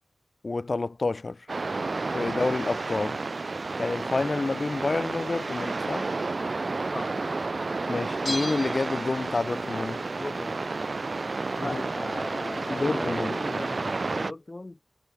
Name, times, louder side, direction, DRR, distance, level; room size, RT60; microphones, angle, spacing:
voice 1, 0.4-1.5 2.1-3.2 3.8-6.1 7.9-10.1 11.7-11.8 12.7-13.4, left 3 dB, 55° left, 1.6 m, -29 dB
sound 1, 1.5-14.3, right 3 dB, 55° right, 1.4 m, -31 dB
Bell, 8.2-9.6 9.9-10.0, left 1 dB, 20° left, 1.2 m, -37 dB
voice 2, 10.1-10.6 11.6-14.8, left 2 dB, 35° left, 1.9 m, -38 dB
cardioid pair, 50°, 0 cm